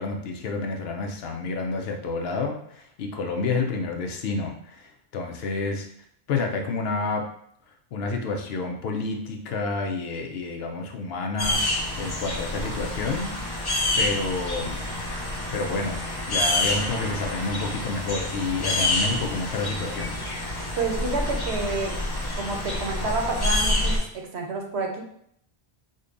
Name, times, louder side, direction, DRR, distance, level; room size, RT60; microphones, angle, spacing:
voice 1, 0.0-5.9 6.3-7.3 7.9-13.4 14.0-14.8 15.5-16.0 16.3-20.2, left 3 dB, 70° left, 3 dB, 0.8 m, -29 dB
sound 1, 11.4-24.0, left 1 dB, 35° left, 0.4 m, -28 dB
voice 2, 20.8-22.0 22.4-25.0, right 3 dB, 85° right, 1 dB, 1.0 m, -29 dB
5.1 x 2.2 x 2.5 m, 0.69 s
omnidirectional pair, 1.1 m